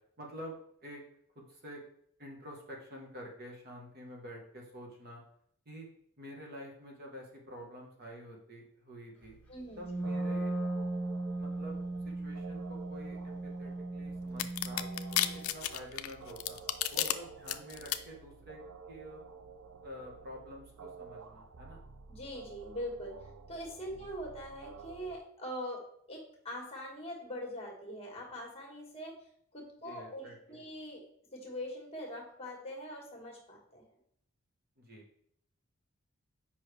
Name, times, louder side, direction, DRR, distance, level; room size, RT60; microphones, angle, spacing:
voice 1, 0.2-1.0 1.3-1.8 2.2-5.2 5.6-5.9 6.2-9.4 9.8-10.5 11.4-11.8 12.0-14.9 15.5-16.6 16.9-18.6 18.9-19.2 19.8-21.8 23.9-24.0 29.8-30.6 34.8-35.1, equal, 45° right, 0 dB, 1.3 m, -48 dB
sound 1, 9.2-25.2, right 4 dB, 85° right, 0.6 m, -51 dB
voice 2, 9.5-9.8 16.9-17.0 22.1-23.2 23.5-25.8 26.1-29.1 29.5-31.0 31.3-33.8, equal, 30° left, 0 dB, 1.6 m, -42 dB
Wind instrument woodwind instrument, 9.8-15.5, right 2 dB, 5° left, 1.3 m, -37 dB
sound 2, 14.4-17.1 17.5-18.0, left 13 dB, 80° left, 0.4 m, -31 dB
6.7 x 5.2 x 3.3 m, 0.67 s
head